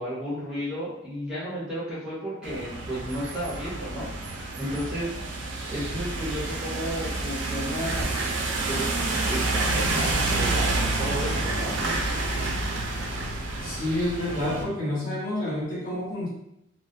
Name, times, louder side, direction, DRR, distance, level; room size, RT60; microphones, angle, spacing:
voice 1, 0.0-5.2 5.7-8.1 8.7-11.8, equal, 5° right, -9 dB, 0.6 m, -33 dB
sound 1, 2.4-14.6, right 2 dB, 65° right, 0.4 m, -28 dB
voice 2, 13.6-16.3, left 1 dB, 45° left, -8 dB, 1.1 m, -29 dB
2.3 x 2.1 x 2.6 m, 0.81 s
head